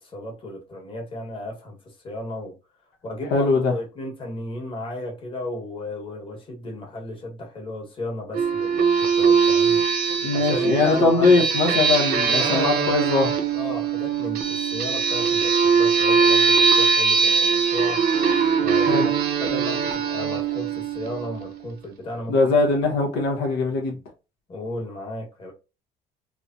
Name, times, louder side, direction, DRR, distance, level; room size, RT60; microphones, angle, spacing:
voice 1, 0.0-2.5 3.0-9.8 10.3-11.5 12.4-13.1 13.5-18.0 18.6-19.1 19.4-22.3 24.5-25.5, left 1 dB, 30° left, 1.2 m, -34 dB
voice 2, 3.3-3.7 10.2-13.3 18.9-19.1 22.3-24.0, left 3 dB, 85° left, 0.9 m, -21 dB
sound 1, 8.3-21.6, right 6 dB, 65° right, 0.7 m, -21 dB
3.1 x 2.1 x 2.5 m
cardioid pair, 110°, 17 cm